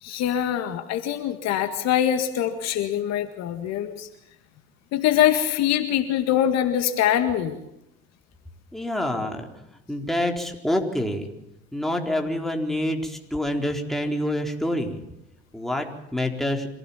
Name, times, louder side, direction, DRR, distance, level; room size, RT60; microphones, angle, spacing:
voice 1, 0.0-4.1 4.9-7.6, left 10 dB, 55° left, 8 dB, 1.9 m, -23 dB
voice 2, 8.7-9.5 9.9-11.3 11.7-15.0 15.5-16.7, left 1 dB, ahead, 2 dB, 4.3 m, -27 dB
25.5 x 16.5 x 7.3 m, 0.87 s
hypercardioid pair, 65°, 31 cm